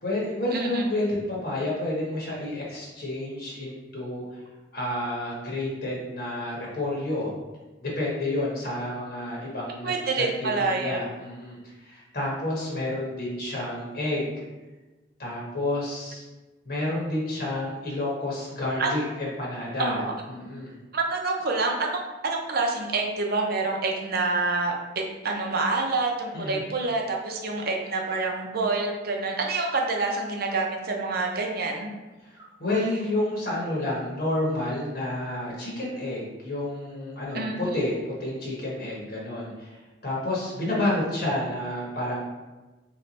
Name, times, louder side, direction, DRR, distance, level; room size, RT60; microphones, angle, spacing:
voice 1, 0.0-4.4 4.7-7.3 7.8-14.4 15.2-16.2 16.6-20.0 20.3-20.7 26.3-26.6 32.2-39.8 40.0-42.2, left 1 dB, 60° left, -4 dB, 1.1 m, -30 dB
voice 2, 0.5-0.8 9.8-11.0 18.8-18.9 19.8-20.1 20.9-31.9 37.3-37.8, right 3 dB, 55° right, 1 dB, 0.6 m, -27 dB
3.2 x 3.1 x 4.1 m, 1.2 s
head